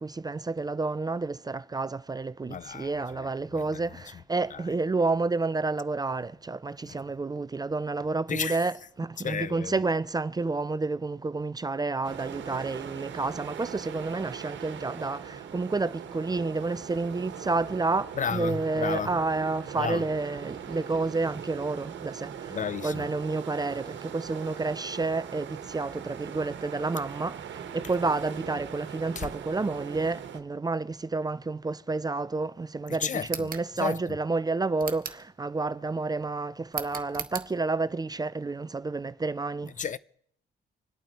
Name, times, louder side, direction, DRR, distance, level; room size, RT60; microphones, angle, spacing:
voice 1, 0.0-22.6 22.8-39.7, right 3 dB, 20° right, 0.5 m, -30 dB
voice 2, 2.5-3.8 4.5-4.6 6.8-7.0 8.3-8.7 9.2-9.8 18.2-19.1 19.8-20.0 22.5-23.1 29.2-29.3 32.9-33.5 33.8-34.2 39.6-40.0, left 7 dB, 40° left, 0.6 m, -33 dB
sound 1, 12.0-30.4, right 8 dB, 65° right, 1.4 m, -41 dB
sound 2, 33.2-33.7 34.8-35.3 36.7-37.5, right 7 dB, 45° right, 1.4 m, -37 dB
26.0 x 8.9 x 4.4 m
cardioid pair, 90°, 20 cm